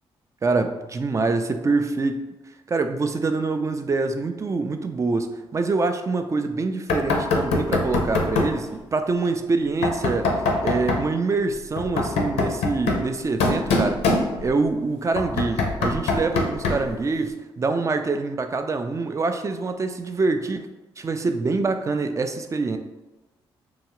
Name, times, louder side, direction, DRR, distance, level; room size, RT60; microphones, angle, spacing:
voice 1, 0.4-2.2 2.7-10.3 10.6-14.0 14.4-20.7 21.0-22.8, right 3 dB, 30° right, 7 dB, 0.3 m, -25 dB
Knock, 6.9-8.6 9.8-11.1 11.8-14.7 15.2-17.0, left 3 dB, 85° left, 0.4 m, -24 dB
2.8 x 2.2 x 2.9 m, 1.1 s
supercardioid pair, 55°, 10 cm